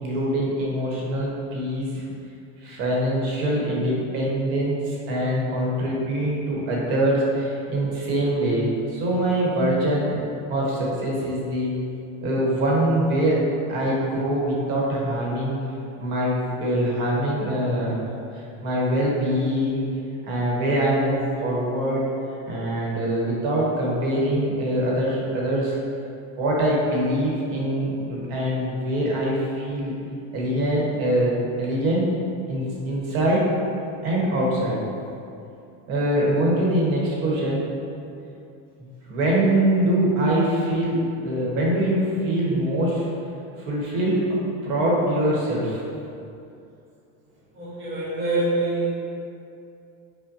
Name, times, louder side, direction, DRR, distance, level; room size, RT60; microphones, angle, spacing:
voice 1, 0.0-2.0 2.6-10.2 10.5-11.8 12.2-13.4 13.7-15.6 16.0-18.0 18.3-19.9 20.2-22.1 22.4-25.8 26.4-29.9 30.3-31.3 31.6-32.1 32.5-33.5 34.0-34.8 35.9-37.7 38.8-43.1 43.6-44.3 44.6-45.8, right 1 dB, 75° right, -4 dB, 1.1 m, -23 dB
voice 2, 47.5-48.9, right 2 dB, 25° right, -9 dB, 1.1 m, -25 dB
5.2 x 2.1 x 2.7 m, 2.6 s
cardioid pair, 165°, 41 cm